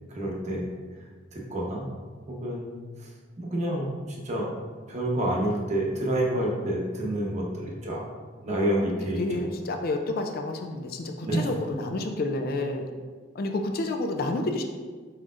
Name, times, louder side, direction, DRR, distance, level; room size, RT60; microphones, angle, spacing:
voice 1, 0.1-0.6 0.9-1.0 1.3-1.9 2.3-4.5 4.9-8.0 8.4-9.2 11.2-11.5, right 1 dB, 40° right, -2 dB, 0.9 m, -28 dB
voice 2, 8.8-12.8 13.3-14.6, left 2 dB, 50° left, 4 dB, 0.4 m, -30 dB
4.7 x 4.4 x 2.4 m, 1.5 s
head